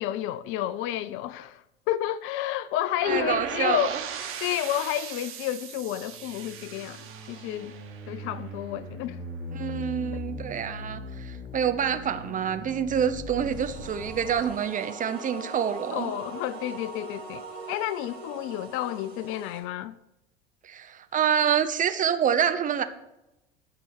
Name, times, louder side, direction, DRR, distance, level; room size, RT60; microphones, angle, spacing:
voice 1, 0.0-1.6 1.9-4.0 4.4-7.7 8.1-9.2 15.9-20.0, left 12 dB, 45° left, 0.5 m, -30 dB
sound 1, 3.0-8.9, right 7 dB, 45° right, 1.8 m, -38 dB
voice 2, 3.1-4.0 9.5-16.1 20.6-22.8, right 8 dB, 25° right, 0.8 m, -27 dB
sound 2, 5.7-14.5, left 2 dB, 15° left, 3.7 m, -40 dB
sound 3, 13.5-19.6, right 3 dB, 90° right, 3.4 m, -41 dB
11.0 x 4.8 x 7.9 m
hypercardioid pair, 80°, 30 cm